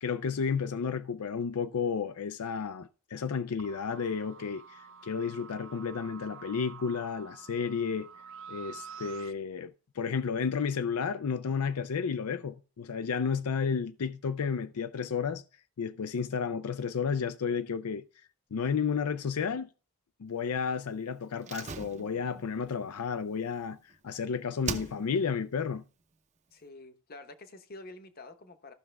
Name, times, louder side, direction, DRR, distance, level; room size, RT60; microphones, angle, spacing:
voice 1, 0.0-8.1 8.5-15.4 15.8-18.0 18.5-19.7 20.2-23.8 24.0-25.8, left 6 dB, 85° left, 0.5 m, -32 dB
sound 1, 3.6-9.3, right 6 dB, 60° right, 0.5 m, -48 dB
Slam, 21.4-24.2 24.6-25.4 25.7-25.8, right 5 dB, 30° right, 0.7 m, -41 dB
voice 2, 26.5-28.7, left 2 dB, 40° left, 1.0 m, -48 dB
14.5 x 6.0 x 3.3 m
head